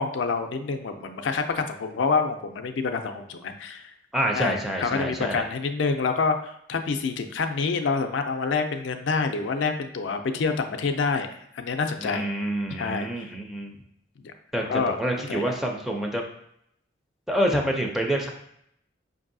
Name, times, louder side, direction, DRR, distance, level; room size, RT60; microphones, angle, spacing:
voice 1, 0.0-3.9 4.4-11.3 11.5-12.3 12.7-13.3 14.2-14.3 14.6-15.0 15.3-15.4, left 4 dB, 75° left, 6 dB, 0.4 m, -27 dB
voice 2, 4.1-5.4 12.0-13.8 14.5-16.2 17.3-18.3, equal, ahead, 0 dB, 0.4 m, -27 dB
5.3 x 2.6 x 2.6 m, 0.73 s
head